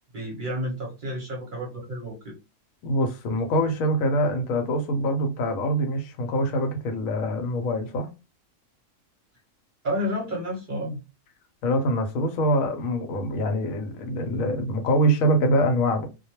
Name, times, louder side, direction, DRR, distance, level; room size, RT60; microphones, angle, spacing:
voice 1, 0.1-2.3 9.8-11.0, equal, 45° right, 0.7 m, -30 dB
voice 2, 2.8-8.1 11.6-16.1, equal, 85° left, 1.0 m, -24 dB
2.2 x 2.2 x 2.9 m
omnidirectional pair, 1.4 m